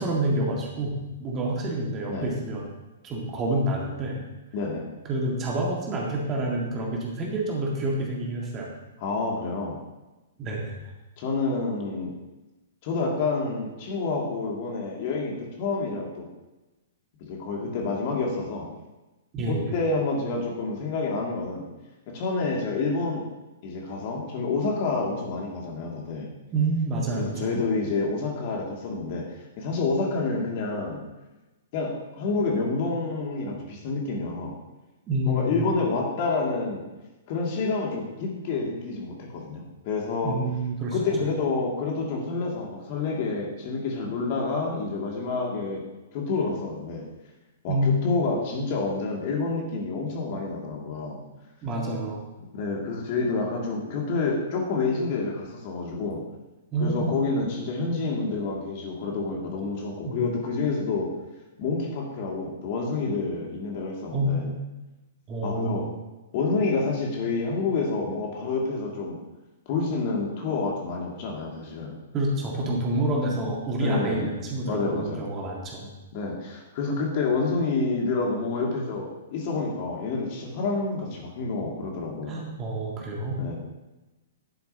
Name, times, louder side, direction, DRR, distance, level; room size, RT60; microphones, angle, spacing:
voice 1, 0.0-2.7 3.0-4.2 5.0-8.7 10.4-10.8 19.3-19.7 26.5-27.5 35.1-35.7 40.2-41.0 47.7-48.2 51.6-52.2 56.7-57.2 60.0-60.3 60.6-60.7 64.1-64.6 65.3-65.8 72.1-75.9 82.3-83.4, right 1 dB, 25° right, -1 dB, 1.9 m, -28 dB
voice 2, 4.5-4.9 9.0-9.8 11.2-12.1 12.8-16.2 17.3-18.7 19.5-21.6 22.1-23.2 23.6-26.3 27.2-29.2 29.6-31.0 31.7-34.6 35.2-36.8 37.3-40.4 40.9-45.8 46.1-47.0 47.6-51.2 52.5-56.2 56.8-61.1 61.6-64.4 65.4-65.9 66.3-69.2 69.7-72.0 73.8-74.3 74.6-75.2 76.1-82.4 83.4-83.6, left 3 dB, 40° left, -1 dB, 2.4 m, -28 dB
11.0 x 9.4 x 2.9 m, 1.1 s
figure-of-eight pair, 110°, 0 cm